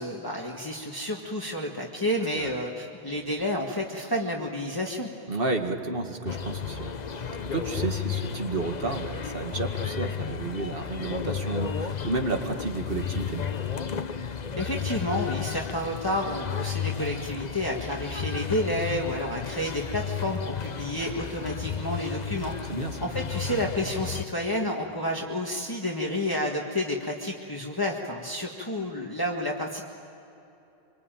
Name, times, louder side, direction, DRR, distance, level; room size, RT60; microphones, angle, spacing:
voice 1, 0.0-5.1 14.6-22.7 23.0-29.8, left 1 dB, 20° left, -1 dB, 1.8 m, -30 dB
voice 2, 5.3-13.4 22.7-23.0, right 3 dB, 60° right, 4 dB, 2.2 m, -31 dB
sound 1, 6.3-24.2, left 7 dB, 45° left, 0.9 m, -33 dB
26.5 x 24.0 x 9.2 m, 2.8 s
omnidirectional pair, 1.1 m